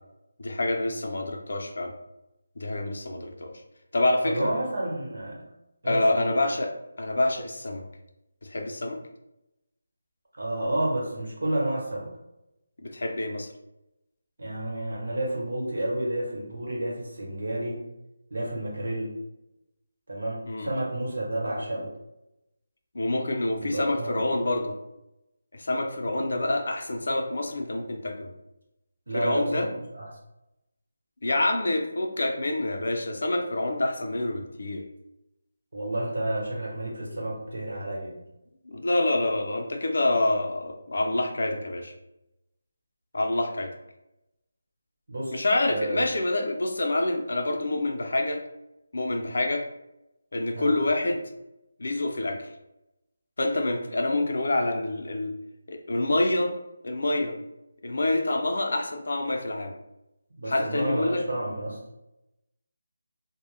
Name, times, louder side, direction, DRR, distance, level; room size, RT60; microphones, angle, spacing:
voice 1, 0.4-1.9 2.6-3.5 3.9-4.5 5.8-6.7 7.0-7.8 8.4-9.0 12.8-13.5 20.5-20.7 22.9-24.8 25.5-28.3 29.1-29.7 31.2-34.8 38.7-41.9 43.1-43.7 45.3-48.4 48.9-49.6 50.3-51.2 51.8-52.5 53.4-55.3 55.7-56.5 56.8-57.4 57.8-59.7 60.5-61.2, left 2 dB, 60° left, 3 dB, 0.4 m, -27 dB
voice 2, 4.2-5.4 5.8-6.3 10.4-12.1 14.4-17.8 18.3-19.1 20.1-21.9 23.6-24.2 26.0-26.2 29.1-30.1 35.7-38.2 45.1-46.0 50.5-50.7 60.4-61.8, right 1 dB, 75° right, -3 dB, 0.9 m, -30 dB
2.1 x 2.0 x 3.1 m, 0.89 s
figure-of-eight pair, 180°, 0 cm